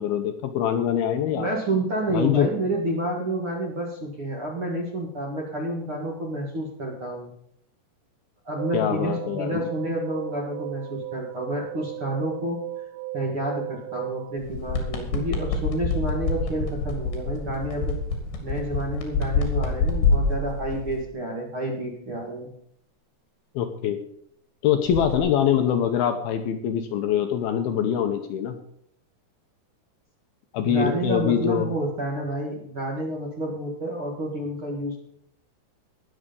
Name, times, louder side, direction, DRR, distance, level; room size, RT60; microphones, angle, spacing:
voice 1, 0.0-1.5 2.1-2.5 8.7-9.7 23.6-24.0 24.6-28.6 30.5-31.7, left 9 dB, 75° left, 6 dB, 2.5 m, -24 dB
voice 2, 1.4-7.3 8.4-12.6 13.1-18.0 18.4-22.5 30.6-35.0, right 1 dB, 40° right, -1 dB, 2.0 m, -29 dB
sound 1, 8.6-14.4, right 15 dB, 80° right, 2.8 m, -36 dB
sound 2, 14.4-21.0 24.9-25.2, left 3 dB, 90° left, 4.6 m, -26 dB
20.0 x 7.2 x 5.2 m, 0.71 s
omnidirectional pair, 5.0 m